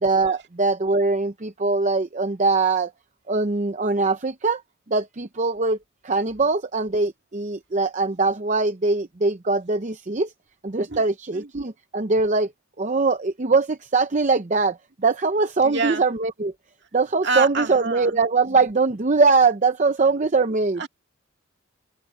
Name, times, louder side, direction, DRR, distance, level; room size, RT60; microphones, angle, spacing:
voice 1, 0.0-2.9 3.3-4.6 4.9-5.8 6.0-10.3 10.6-12.5 12.8-16.5 16.9-20.8, right 3 dB, 35° right, 0.7 m, -22 dB
voice 2, 15.6-16.0 17.2-18.1 20.8-20.9, right 3 dB, 55° right, 2.3 m, -26 dB
head